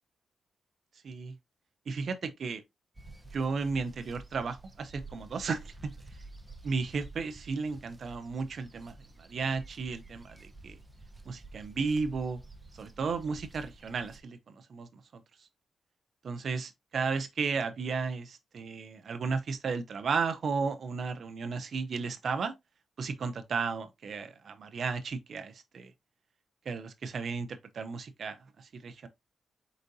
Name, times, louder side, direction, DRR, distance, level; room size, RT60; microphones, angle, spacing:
voice 1, 1.0-1.3 1.9-2.6 3.3-6.2 6.6-10.8 11.3-12.4 12.7-15.5 16.2-22.5 23.0-25.9 26.7-29.1, right 4 dB, 60° right, 0.5 m, -34 dB
sound 1, 2.9-14.2, right 2 dB, 15° right, 0.7 m, -50 dB
4.5 x 3.9 x 2.6 m
cardioid pair, 80°, 0 cm